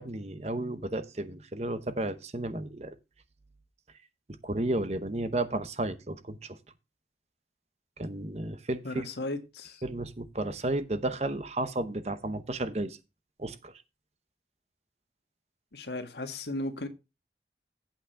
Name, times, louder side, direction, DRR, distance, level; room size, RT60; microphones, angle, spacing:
voice 1, 0.0-2.9 4.4-6.6 8.0-9.1 9.8-13.0 13.4-13.7, right 2 dB, 40° right, 0.8 m, -33 dB
voice 2, 8.8-9.8 15.7-16.9, left 2 dB, 75° left, 1.6 m, -36 dB
8.7 x 5.8 x 5.7 m
head